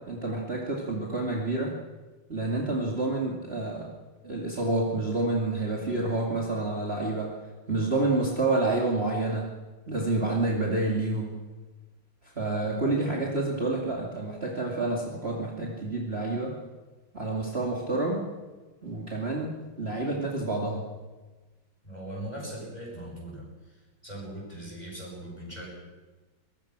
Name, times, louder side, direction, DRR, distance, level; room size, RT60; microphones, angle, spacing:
voice 1, 0.0-1.8 2.3-3.9 4.2-7.3 7.7-9.5 9.9-11.4 12.4-16.6 17.1-18.3 18.8-20.9, right 2 dB, 30° right, -2 dB, 2.7 m, -28 dB
voice 2, 21.8-23.5 24.0-25.7, right 1 dB, 20° left, -3 dB, 8.2 m, -39 dB
23.0 x 20.5 x 6.1 m, 1.3 s
omnidirectional pair, 2.2 m